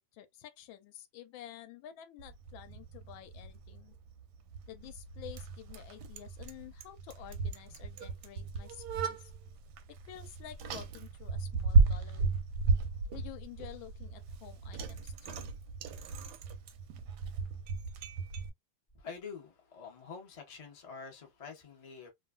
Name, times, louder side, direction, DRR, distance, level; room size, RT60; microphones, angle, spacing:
voice 1, 0.0-3.9 4.7-9.2 9.9-12.4 13.1-15.5, left 11 dB, 85° left, 1.4 m, -50 dB
Bicycle, 2.2-18.5, right 4 dB, 70° right, 1.0 m, -34 dB
voice 2, 18.9-22.1, left 5 dB, 40° left, 0.5 m, -47 dB
3.1 x 2.4 x 2.2 m
omnidirectional pair, 2.1 m